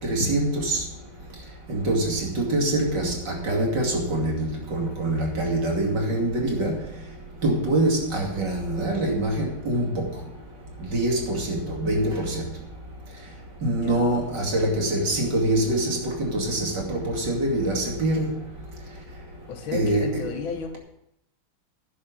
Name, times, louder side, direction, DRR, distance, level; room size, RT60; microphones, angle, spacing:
voice 1, 0.0-0.8 1.7-6.8 7.4-10.0 10.8-12.4 13.6-18.3 19.7-20.2, right 1 dB, 55° right, -1 dB, 3.1 m, -24 dB
voice 2, 13.8-14.2 19.5-20.8, left 6 dB, 70° left, 7 dB, 1.9 m, -33 dB
10.5 x 6.4 x 8.7 m, 0.78 s
omnidirectional pair, 2.3 m